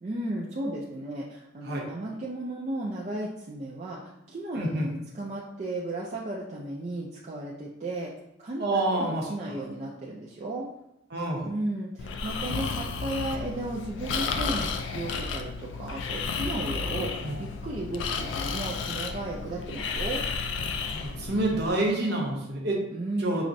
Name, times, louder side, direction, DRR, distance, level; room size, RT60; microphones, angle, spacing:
voice 1, 0.0-4.0 4.3-8.1 8.4-10.7 11.4-17.1 17.4-20.2 22.9-23.4, right 1 dB, 35° right, -4 dB, 0.4 m, -34 dB
voice 2, 4.5-4.9 8.6-9.2 11.1-11.4 17.2-17.3 21.2-22.8 23.2-23.4, right 2 dB, 55° right, -1 dB, 0.7 m, -27 dB
Breathing, 12.0-21.7, left 5 dB, 65° left, 0.3 m, -32 dB
5.7 x 2.1 x 2.5 m, 0.84 s
head